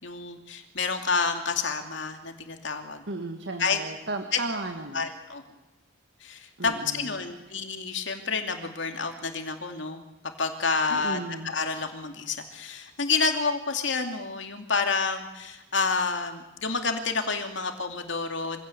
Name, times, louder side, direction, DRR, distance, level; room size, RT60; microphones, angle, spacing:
voice 1, 0.0-3.0 3.6-3.8 4.3-4.4 4.9-5.4 6.2-10.0 10.4-18.6, left 4 dB, 75° left, 5 dB, 2.6 m, -29 dB
voice 2, 3.1-5.1 6.6-7.2 10.9-11.5, right 2 dB, 70° right, 4 dB, 1.9 m, -35 dB
25.5 x 17.0 x 8.3 m, 0.99 s
head